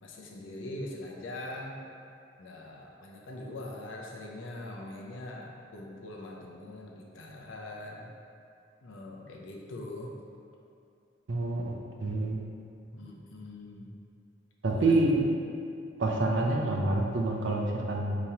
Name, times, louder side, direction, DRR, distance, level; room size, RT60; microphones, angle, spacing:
voice 1, 0.0-1.8 2.4-8.1 8.8-10.1 12.9-13.9 14.7-15.0, left 1 dB, 80° left, -1 dB, 0.6 m, -42 dB
voice 2, 11.3-11.7 12.0-12.4 14.6-15.2 16.0-18.2, right 2 dB, 65° right, 0 dB, 0.5 m, -27 dB
5.0 x 2.9 x 2.8 m, 2.5 s
head